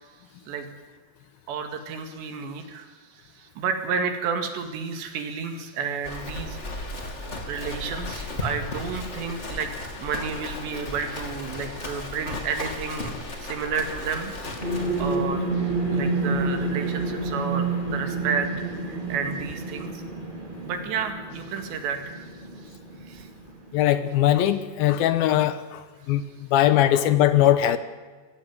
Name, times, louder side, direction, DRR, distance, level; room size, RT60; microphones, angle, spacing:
voice 1, 1.5-6.6 7.5-9.7 10.0-14.3 14.6-20.0 20.6-22.3 22.6-23.3, right 5 dB, 75° right, 6 dB, 4.2 m, -31 dB
Livestock farm animals working animals, 6.0-15.2, left 2 dB, 25° left, 1.5 m, -35 dB
sound 1, 14.6-23.8, right 3 dB, 10° right, 3.5 m, -29 dB
voice 2, 23.7-27.8, left 12 dB, 70° left, 12 dB, 2.5 m, -21 dB
23.0 x 15.0 x 9.3 m, 1.4 s
omnidirectional pair, 5.0 m